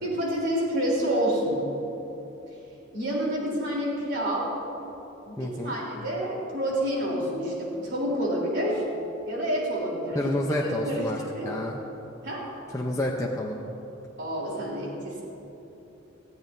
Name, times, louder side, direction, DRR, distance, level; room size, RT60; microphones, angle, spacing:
voice 1, 0.0-1.7 2.5-2.6 2.9-4.5 5.2-8.8 9.3-10.3 10.8-11.6 12.2-12.5 14.2-15.2, equal, 60° right, -3 dB, 3.5 m, -28 dB
voice 2, 5.4-5.7 10.1-11.2 11.4-11.8 12.7-13.6, left 1 dB, 15° left, -1 dB, 0.7 m, -28 dB
19.5 x 14.5 x 2.7 m, 3.0 s
head